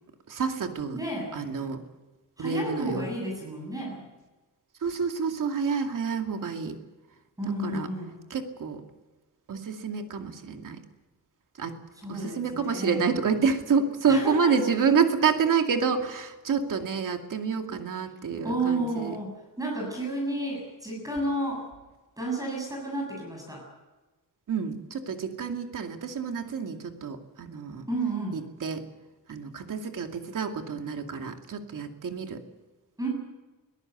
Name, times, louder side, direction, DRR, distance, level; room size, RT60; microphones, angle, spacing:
voice 1, 0.3-1.0 1.4-1.8 2.4-3.1 4.8-6.8 7.6-7.9 8.3-8.8 9.5-10.8 11.6-11.8 12.1-19.1 24.5-27.8 28.6-28.8 29.3-32.4, right 5 dB, 60° right, 5 dB, 2.5 m, -28 dB
voice 2, 0.9-1.4 2.4-4.0 7.4-8.2 11.9-13.0 14.1-14.6 16.5-16.7 18.4-21.6 22.2-23.6 27.9-28.5 33.0-33.1, right 1 dB, 10° right, 0 dB, 7.3 m, -31 dB
23.0 x 17.5 x 8.1 m, 1.2 s
wide cardioid pair, 145°, 35 cm